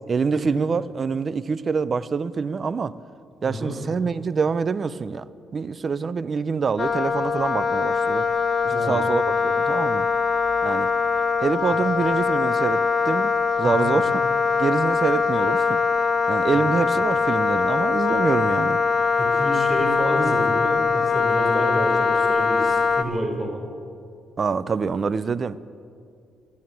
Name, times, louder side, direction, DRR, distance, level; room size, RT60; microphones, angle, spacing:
voice 1, 0.1-2.9 3.4-5.2 5.5-8.3 8.6-10.1 10.6-10.9 11.4-14.2 14.6-15.8 16.3-18.8 24.4-25.6, right 5 dB, 40° right, 16 dB, 0.5 m, -25 dB
voice 2, 3.4-3.8 8.7-9.1 13.6-14.0 16.5-16.6 19.1-23.6, right 1 dB, 10° right, 0 dB, 4.4 m, -29 dB
Wind instrument woodwind instrument, 6.8-23.0, left 5 dB, 35° left, 0.8 m, -22 dB
13.5 x 10.5 x 9.3 m, 2.4 s
cardioid pair, 90°, 0 cm